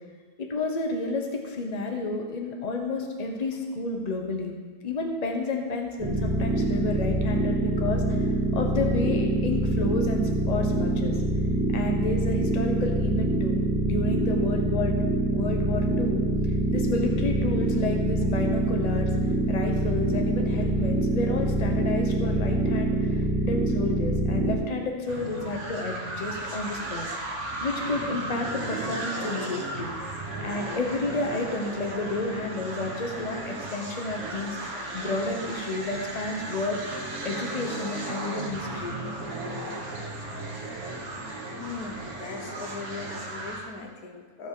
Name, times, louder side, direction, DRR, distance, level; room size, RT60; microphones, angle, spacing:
voice 1, 0.4-4.5 4.8-11.2 11.7-15.0 15.3-16.3 16.7-27.1 27.6-29.9 30.4-36.8 37.2-39.0, left 3 dB, 30° left, 2 dB, 1.1 m, -31 dB
sound 1, 6.0-24.5, right 2 dB, 10° right, 2.7 m, -25 dB
sound 2, 25.1-43.7, right 2 dB, 55° right, 1.5 m, -35 dB
voice 2, 41.6-44.5, left 4 dB, 90° left, 3 dB, 1.5 m, -39 dB
15.5 x 5.4 x 4.9 m, 1.5 s
omnidirectional pair, 1.6 m